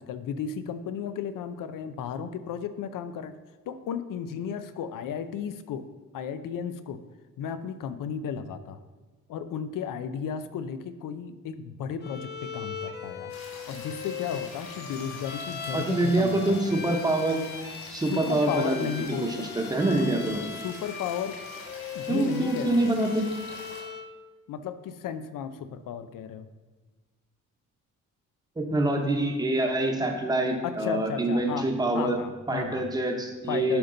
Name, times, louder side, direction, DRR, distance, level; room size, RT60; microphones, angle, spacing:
voice 1, 0.0-3.3 3.7-5.9 6.1-7.0 7.4-8.8 9.3-13.3 13.7-16.6 18.1-19.5 20.6-21.4 21.9-22.9 24.5-26.5 30.6-32.9 33.5-33.8, left 7 dB, 90° left, 11 dB, 0.6 m, -34 dB
Bowed string instrument, 12.0-24.2, left 6 dB, 35° left, 0.5 m, -39 dB
sound 1, 13.3-23.8, left 2 dB, 55° left, 2.6 m, -45 dB
voice 2, 15.7-17.4 17.9-18.9 19.4-20.4 22.1-23.2 28.6-32.2 32.5-33.8, right 2 dB, 10° right, 2 dB, 0.9 m, -25 dB
11.5 x 5.2 x 3.9 m, 1.3 s
wide cardioid pair, 175°, 31 cm